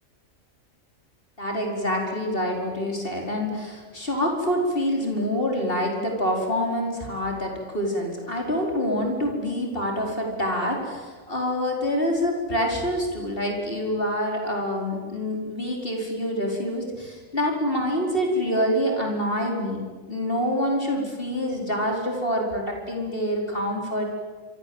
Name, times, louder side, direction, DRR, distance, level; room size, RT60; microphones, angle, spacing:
voice 1, 1.4-19.8 20.1-24.0, equal, 40° left, 1 dB, 5.2 m, -26 dB
27.0 x 26.0 x 8.1 m, 1.4 s
omnidirectional pair, 1.4 m